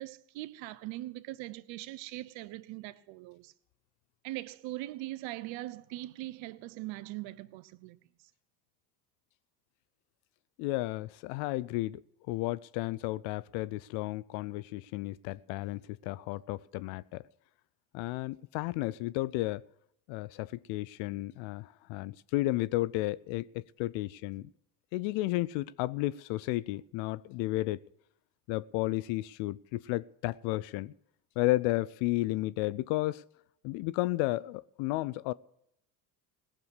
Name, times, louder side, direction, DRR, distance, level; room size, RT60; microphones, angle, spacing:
voice 1, 0.0-3.5 4.2-8.0, right 17 dB, 65° right, 1.0 m, -41 dB
voice 2, 10.6-12.0 12.3-17.2 17.9-19.6 20.1-24.5 24.9-27.8 28.5-30.9 31.4-33.2 33.6-35.3, left 18 dB, 65° left, 0.6 m, -33 dB
18.0 x 6.9 x 8.1 m
hypercardioid pair, 75°, 50 cm